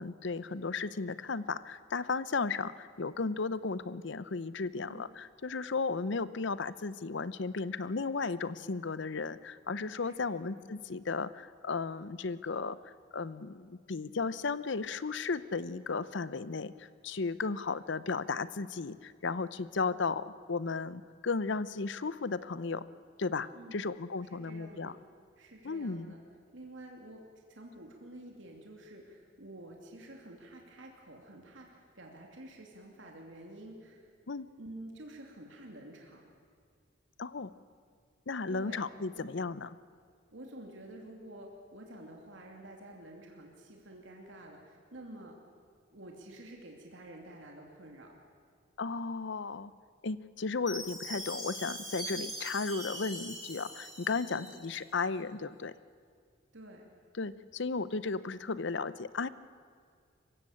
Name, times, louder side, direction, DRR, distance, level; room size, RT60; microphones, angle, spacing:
voice 1, 0.0-22.8 23.2-24.9 25.6-26.1 34.3-34.5 37.2-37.5 38.3-39.7 48.8-49.7 50.0-55.7 57.2-59.3, left 4 dB, 65° left, 16 dB, 0.7 m, -35 dB
voice 2, 10.0-10.5 23.5-23.8 24.3-25.0 25.4-26.2 26.5-34.1 34.6-36.2 38.5-38.9 39.1-39.3 40.3-45.4 45.9-48.1 54.3-54.6 56.5-56.9, right 1 dB, 70° right, 1 dB, 2.8 m, -49 dB
Chime, 50.7-54.8, equal, ahead, 6.5 m, -42 dB
26.0 x 15.5 x 8.6 m, 2.1 s
head